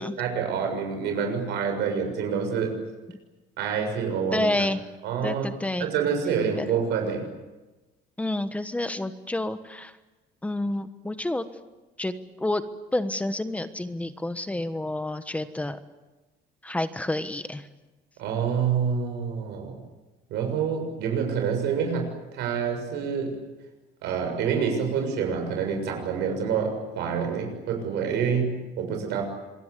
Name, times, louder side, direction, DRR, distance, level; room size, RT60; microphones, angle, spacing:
voice 1, 0.0-2.8 3.6-4.7 5.0-5.5 5.8-7.3 18.2-19.8 20.3-23.4 24.0-29.2, right 6 dB, 70° right, 4 dB, 7.0 m, -27 dB
voice 2, 4.3-4.8 5.2-5.9 6.6-6.7 8.2-9.9 10.4-11.4 12.0-12.1 12.4-12.6 12.9-15.8 16.6-17.7, left 1 dB, 5° left, 10 dB, 1.2 m, -29 dB
27.0 x 22.5 x 8.3 m, 1.1 s
cardioid pair, 160°, 19 cm